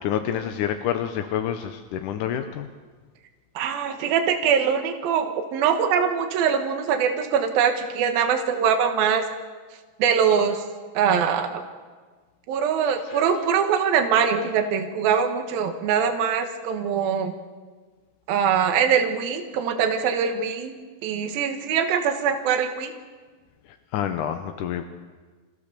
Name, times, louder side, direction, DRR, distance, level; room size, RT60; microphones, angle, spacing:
voice 1, 0.0-2.7 12.8-13.3 23.7-24.8, left 9 dB, 75° left, 6 dB, 2.1 m, -28 dB
voice 2, 3.6-9.2 10.0-10.6 10.9-11.6 12.5-17.3 18.3-20.7 21.0-22.9, right 7 dB, 75° right, 5 dB, 3.2 m, -23 dB
27.5 x 15.0 x 6.8 m, 1.4 s
omnidirectional pair, 4.4 m